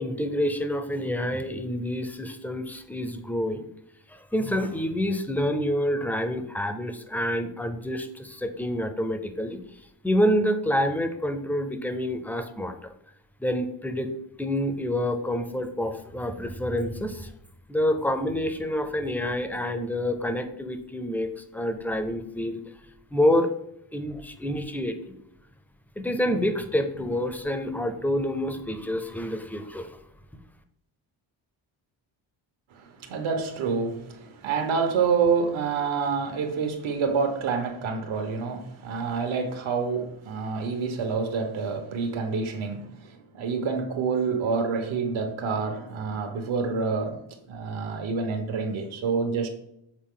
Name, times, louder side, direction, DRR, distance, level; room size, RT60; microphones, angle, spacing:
voice 1, 0.0-3.7 4.1-9.6 10.0-12.9 13.4-14.1 14.4-17.3 17.7-22.7 23.1-23.5 23.9-25.2 26.0-30.0, equal, 5° left, 8 dB, 0.4 m, -27 dB
voice 2, 32.7-47.2 47.5-49.5, right 5 dB, 85° right, 5 dB, 1.3 m, -27 dB
7.3 x 4.1 x 3.8 m, 0.78 s
cardioid pair, 165°, 46 cm